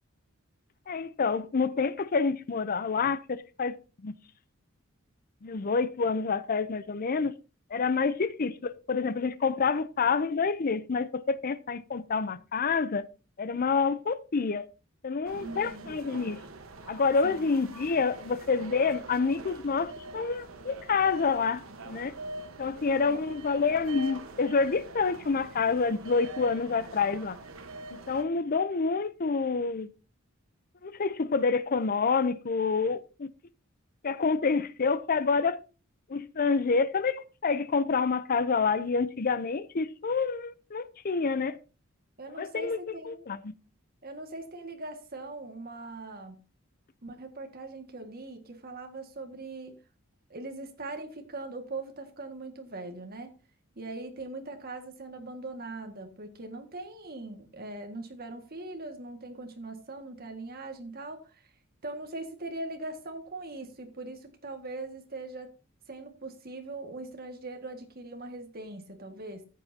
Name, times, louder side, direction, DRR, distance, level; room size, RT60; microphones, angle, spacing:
voice 1, 0.9-3.8 4.0-4.1 5.4-7.3 7.7-13.1 13.4-14.7 15.0-16.4 16.9-22.1 22.6-27.4 27.9-29.9 30.8-33.3 34.0-35.6 36.1-41.6 42.4-42.8 43.1-43.5, left 4 dB, 45° left, 0.6 m, -28 dB
sound 1, 15.2-28.2, right 2 dB, 70° right, 1.2 m, -44 dB
voice 2, 15.3-15.9 17.2-17.5 22.9-23.3 42.2-43.3 44.0-46.4 47.0-49.7 50.3-53.3 53.8-61.5 61.8-65.5 65.9-69.5, right 2 dB, 45° right, 1.8 m, -41 dB
14.0 x 8.3 x 2.7 m
head